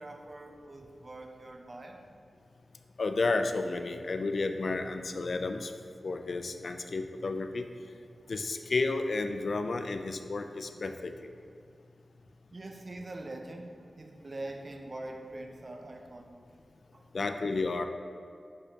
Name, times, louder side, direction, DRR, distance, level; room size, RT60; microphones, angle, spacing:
voice 1, 0.0-2.0 8.1-8.3 12.5-16.4 16.9-17.1, right 2 dB, 40° right, 3 dB, 0.6 m, -43 dB
voice 2, 3.0-5.7 6.0-7.6 8.3-11.1 17.1-17.9, left 3 dB, 65° left, 7 dB, 0.4 m, -31 dB
6.3 x 5.4 x 2.8 m, 2.4 s
wide cardioid pair, 85°, 0 cm